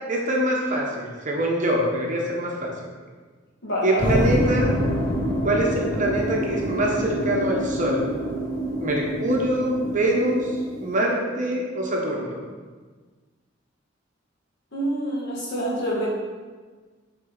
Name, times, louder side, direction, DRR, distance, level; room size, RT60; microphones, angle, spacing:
voice 1, 0.1-2.7 3.8-4.8 5.4-8.1 8.8-10.5 10.8-12.4, right 1 dB, 40° right, -1 dB, 1.1 m, -24 dB
voice 2, 3.6-4.2 14.7-16.1, equal, 60° left, -5 dB, 1.9 m, -26 dB
sound 1, 4.0-11.0, equal, 20° left, 1.8 m, -27 dB
7.6 x 4.0 x 4.0 m, 1.4 s
head